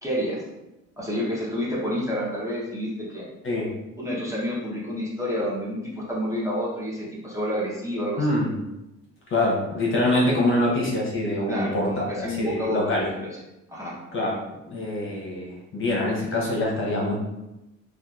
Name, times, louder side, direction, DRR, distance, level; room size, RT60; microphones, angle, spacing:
voice 1, 0.0-0.4 1.0-3.2 4.0-8.3 11.5-13.3 13.7-13.9, equal, 10° right, -6 dB, 0.7 m, -29 dB
voice 2, 8.2-8.5 9.3-13.1 14.1-14.4 14.7-17.2, left 1 dB, 45° left, -3 dB, 0.9 m, -25 dB
2.7 x 2.3 x 2.3 m, 0.94 s
cardioid pair, 90°, 30 cm